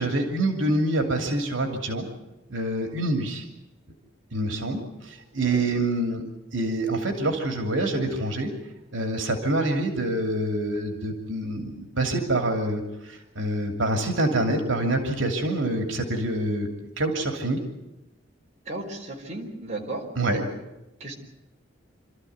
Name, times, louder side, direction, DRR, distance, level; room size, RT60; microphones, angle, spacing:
voice 1, 0.0-2.1 2.5-3.4 4.3-6.2 6.5-8.5 8.9-16.7 17.0-17.6 20.2-20.4, right 1 dB, 70° right, 4 dB, 2.9 m, -26 dB
voice 2, 18.6-20.0 21.0-21.1, right 2 dB, 35° right, 0 dB, 4.1 m, -35 dB
27.5 x 13.5 x 9.5 m, 0.97 s
head